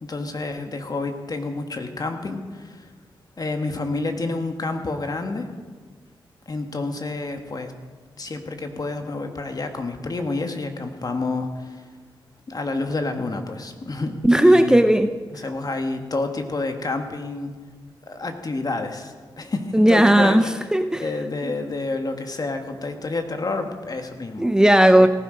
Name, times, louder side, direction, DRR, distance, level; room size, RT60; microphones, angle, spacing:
voice 1, 0.0-2.9 3.4-5.5 6.5-7.7 8.2-11.8 12.5-14.8 15.3-17.5 18.1-20.5 21.0-24.5 25.0-25.1, left 3 dB, 45° left, 5 dB, 1.8 m, -29 dB
voice 2, 14.2-15.1 19.7-21.1 21.4-21.5 24.4-25.1, right 1 dB, 5° right, 9 dB, 0.6 m, -16 dB
18.0 x 12.0 x 5.2 m, 1.5 s
cardioid pair, 55°, 9 cm